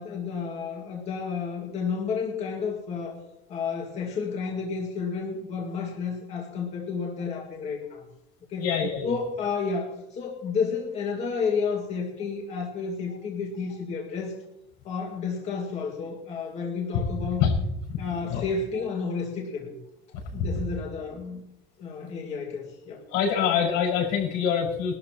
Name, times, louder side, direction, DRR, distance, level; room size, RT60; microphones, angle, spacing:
voice 1, 0.0-3.2 3.5-8.0 8.5-8.7 9.0-14.3 14.8-17.5 18.0-19.8 20.3-21.4 21.8-23.0 23.4-23.5, left 5 dB, 30° left, 0 dB, 2.0 m, -31 dB
voice 2, 8.6-9.1 17.4-17.5 17.9-18.0 18.2-18.4 23.1-25.0, left 7 dB, 80° left, 0 dB, 5.6 m, -25 dB
22.0 x 12.5 x 3.0 m, 0.85 s
cardioid pair, 175°, 20 cm